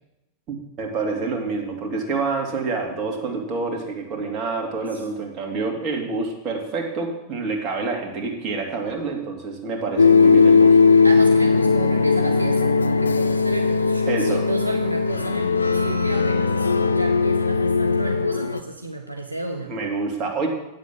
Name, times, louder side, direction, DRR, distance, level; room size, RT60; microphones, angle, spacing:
voice 1, 0.5-10.8 14.1-14.5 19.7-20.5, right 4 dB, 35° right, 1 dB, 2.4 m, -27 dB
sound 1, 10.0-18.6, left 4 dB, 75° left, 0.5 m, -18 dB
voice 2, 11.0-19.7, right 1 dB, 85° right, 2 dB, 0.8 m, -31 dB
8.8 x 7.4 x 7.5 m, 0.93 s
figure-of-eight pair, 90°, 0 cm